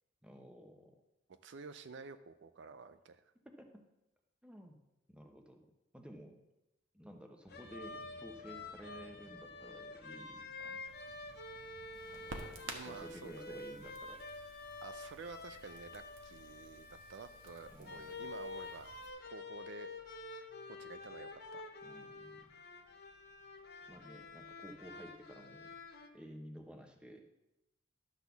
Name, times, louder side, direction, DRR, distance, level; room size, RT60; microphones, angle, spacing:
voice 1, 0.2-0.9 3.4-3.8 4.4-4.8 5.1-5.7 5.9-6.4 6.9-10.8 12.1-12.4 12.8-14.6 17.7-18.3 21.8-22.4 23.9-25.7 26.1-27.2, equal, 5° right, 3 dB, 0.9 m, -53 dB
voice 2, 1.4-3.2 12.6-13.6 14.8-18.9 19.2-19.9 20.7-21.6, right 4 dB, 60° right, 11 dB, 0.4 m, -50 dB
sound 1, 7.4-14.2, equal, 25° left, 0.8 m, -64 dB
sound 2, 7.5-26.1, left 3 dB, 50° left, 0.8 m, -49 dB
Crackle, 10.9-19.1, right 2 dB, 80° right, 1.4 m, -53 dB
12.5 x 4.2 x 6.9 m, 0.93 s
head